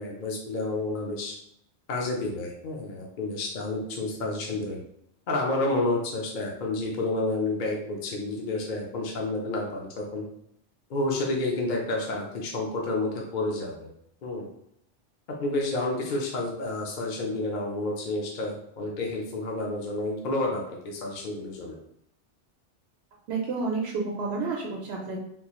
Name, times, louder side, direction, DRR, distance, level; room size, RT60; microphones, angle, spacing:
voice 1, 0.0-1.4 1.9-4.8 5.3-10.2 10.9-13.9 14.2-14.5 15.4-21.7, left 2 dB, 50° left, -1 dB, 0.7 m, -30 dB
voice 2, 23.3-25.2, right 4 dB, 70° right, -2 dB, 0.8 m, -30 dB
3.6 x 2.4 x 2.9 m, 0.73 s
omnidirectional pair, 1.2 m